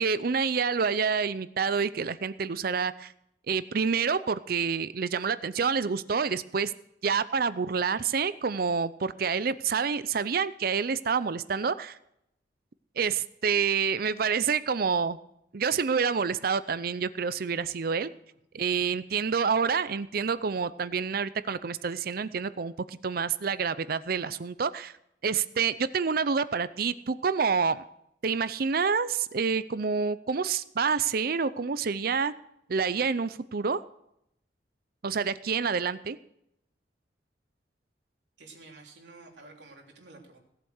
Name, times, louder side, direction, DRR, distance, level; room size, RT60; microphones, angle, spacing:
voice 1, 0.0-3.1 3.5-6.7 7.0-12.0 13.0-15.2 15.5-18.1 18.5-24.9 25.2-27.8 28.2-32.3 32.7-33.8 35.0-36.2, right 5 dB, 55° right, 15 dB, 0.5 m, -28 dB
voice 2, 38.4-40.4, right 3 dB, 75° right, 0 dB, 3.3 m, -50 dB
17.0 x 8.1 x 6.5 m, 0.76 s
head